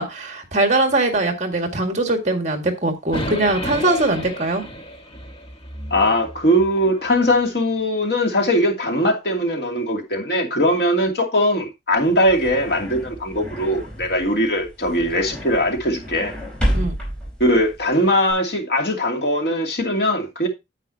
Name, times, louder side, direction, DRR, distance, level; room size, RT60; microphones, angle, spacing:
voice 1, 0.0-4.6 16.7-17.0, right 2 dB, 40° right, 1.9 m, -21 dB
sound 1, 3.1-7.3, equal, 30° left, 1.4 m, -33 dB
voice 2, 5.9-16.3 17.4-20.5, equal, 60° left, 2.6 m, -20 dB
sound 2, 11.9-18.3, equal, 5° left, 4.3 m, -30 dB
9.7 x 8.5 x 2.8 m
head